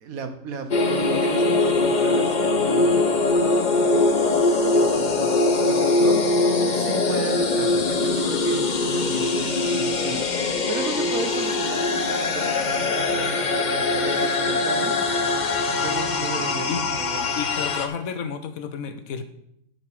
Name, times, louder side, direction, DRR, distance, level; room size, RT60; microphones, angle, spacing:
voice 1, 0.0-3.3 4.4-15.4 15.6-17.3, right 4 dB, 85° right, 8 dB, 1.5 m, -35 dB
sound 1, 0.7-17.9, left 3 dB, 40° left, 0.9 m, -22 dB
voice 2, 17.4-19.2, left 6 dB, 85° left, 9 dB, 1.3 m, -31 dB
10.5 x 5.8 x 4.9 m, 0.75 s
omnidirectional pair, 1.4 m